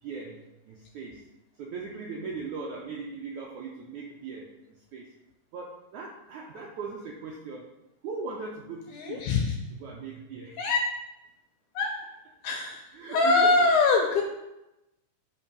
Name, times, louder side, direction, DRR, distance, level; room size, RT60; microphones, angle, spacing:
voice 1, 0.0-1.2 1.6-5.1 5.5-7.7 8.0-9.3 9.8-10.6 12.9-13.7, right 4 dB, 85° right, -1 dB, 1.7 m, -39 dB
voice 2, 8.9-9.5 10.6-10.8 11.7-11.9 12.4-14.2, left 3 dB, 80° left, 1 dB, 1.8 m, -23 dB
7.2 x 2.7 x 5.2 m, 0.93 s
omnidirectional pair, 4.0 m